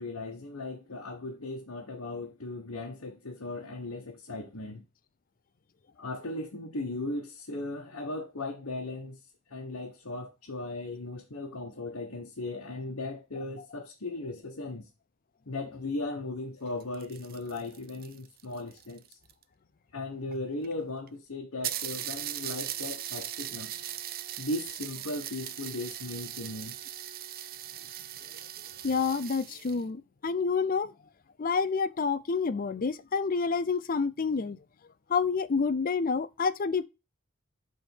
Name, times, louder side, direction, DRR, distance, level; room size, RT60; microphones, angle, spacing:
voice 1, 0.0-4.8 6.0-9.2 9.5-14.9 15.5-19.2 19.9-23.7 24.4-26.8, left 2 dB, 75° left, 1.3 m, -37 dB
sound 1, 16.7-19.4 20.3-20.4 20.6-20.7 21.1-21.2 21.6-29.8, right 12 dB, 45° right, 0.5 m, -39 dB
voice 2, 28.8-30.9 31.4-34.6 35.1-36.9, left 5 dB, 40° left, 0.5 m, -28 dB
7.6 x 3.5 x 5.5 m
head